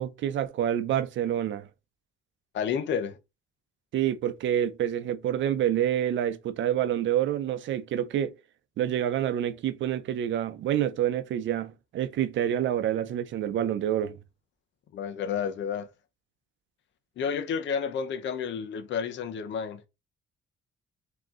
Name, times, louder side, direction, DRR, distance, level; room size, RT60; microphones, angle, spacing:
voice 1, 0.0-1.7 3.9-8.3 8.8-14.2, right 10 dB, 70° right, 0.6 m, -27 dB
voice 2, 2.5-3.2 14.9-15.9 17.2-19.8, left 7 dB, 65° left, 0.7 m, -30 dB
3.7 x 2.9 x 3.7 m
cardioid pair, 90°, 20 cm